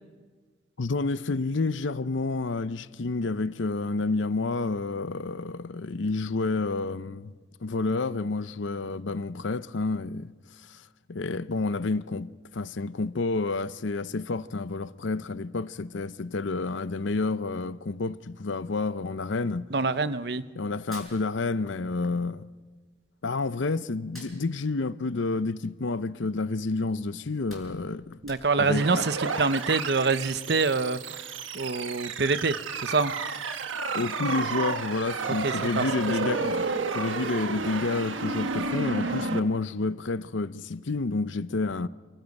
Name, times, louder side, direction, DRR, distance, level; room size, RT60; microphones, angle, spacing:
voice 1, 0.8-10.3 10.6-10.8 11.1-19.7 20.6-22.5 23.2-28.2 28.6-29.0 33.9-41.9, left 3 dB, 75° left, 0.7 m, -29 dB
voice 2, 19.7-20.4 28.2-33.2 35.2-35.8, right 4 dB, 55° right, 0.8 m, -26 dB
Hands, 20.8-22.0 22.3-23.5 23.9-26.3 26.7-26.8 27.2-28.8, equal, ahead, 6.5 m, -50 dB
sound 1, 28.7-39.4, right 4 dB, 85° right, 1.3 m, -31 dB
28.5 x 25.0 x 5.4 m
head